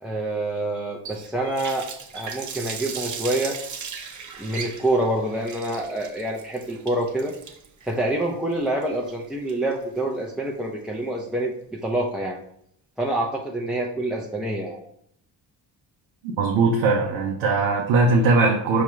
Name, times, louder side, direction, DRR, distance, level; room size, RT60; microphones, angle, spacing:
voice 1, 0.0-1.9 2.1-3.6 4.4-7.3 7.8-12.4 13.0-14.8, right 1 dB, ahead, -2 dB, 0.5 m, -26 dB
Water tap faucet, 1.0-10.0, right 6 dB, 40° right, 0.7 m, -37 dB
voice 2, 16.2-18.8, right 3 dB, 90° right, 0 dB, 0.7 m, -20 dB
4.7 x 2.3 x 3.0 m, 0.70 s
supercardioid pair, 60°, 45 cm